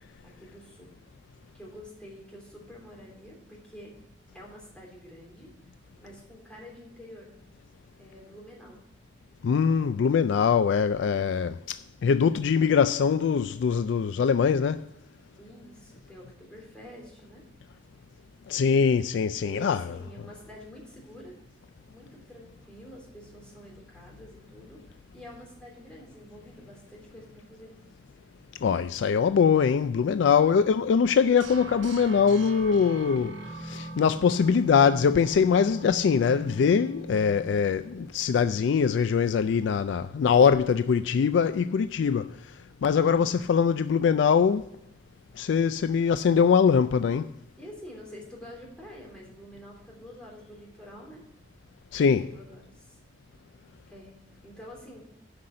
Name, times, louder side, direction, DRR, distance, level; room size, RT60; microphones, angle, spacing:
voice 1, 0.2-0.9 1.5-3.9 4.3-5.5 6.0-7.3 8.0-8.8 15.4-17.4 19.4-21.4 21.8-24.8 25.1-27.7 30.5-30.9 42.9-43.6 47.6-51.2 52.2-53.0 53.9-54.2 54.4-55.0, equal, 5° left, 3.3 m, -47 dB
voice 2, 9.4-14.9 18.5-19.8 28.6-42.4 42.8-44.7 45.4-47.3 51.9-52.3, left 6 dB, 75° left, 0.3 m, -23 dB
sound 1, 31.4-38.3, right 1 dB, 80° right, 1.0 m, -40 dB
11.5 x 5.7 x 6.3 m
head